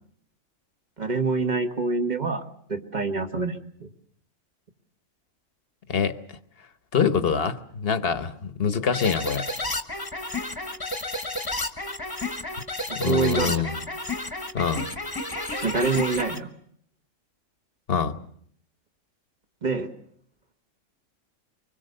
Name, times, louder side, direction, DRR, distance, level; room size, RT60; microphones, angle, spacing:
voice 1, 1.0-2.4 2.7-3.9 13.1-13.6 15.6-16.5 19.6-19.9, right 3 dB, 35° right, 6 dB, 1.7 m, -26 dB
voice 2, 6.9-9.5 12.9-13.8 14.5-14.9 17.9-18.2, left 6 dB, 50° left, 11 dB, 1.2 m, -25 dB
sound 1, 8.9-16.4, left 2 dB, 20° left, 1.3 m, -31 dB
24.5 x 21.0 x 6.7 m, 0.65 s
omnidirectional pair, 1.3 m